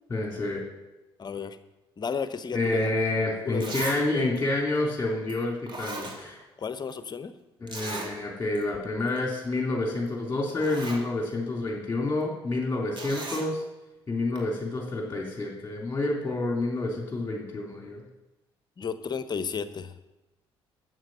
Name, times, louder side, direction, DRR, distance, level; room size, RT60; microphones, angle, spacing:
voice 1, 0.1-0.6 2.5-6.4 7.6-13.6 14.1-18.0, left 2 dB, 15° left, -1 dB, 3.3 m, -28 dB
voice 2, 1.2-1.6 2.0-2.9 3.5-3.7 6.6-7.4 18.8-19.9, left 6 dB, 30° left, 12 dB, 1.0 m, -33 dB
Zipper (clothing), 3.1-3.2 3.6-4.0 4.4-4.5 5.3-5.4 5.7-6.6 6.9-7.0 7.7-8.1 8.6-8.7 9.0-9.2 10.1-10.2 10.5-11.0 13.0-13.5 14.4-14.5, right 2 dB, 35° right, 2.6 m, -37 dB
13.0 x 7.8 x 6.2 m, 1.0 s
figure-of-eight pair, 50°, 13 cm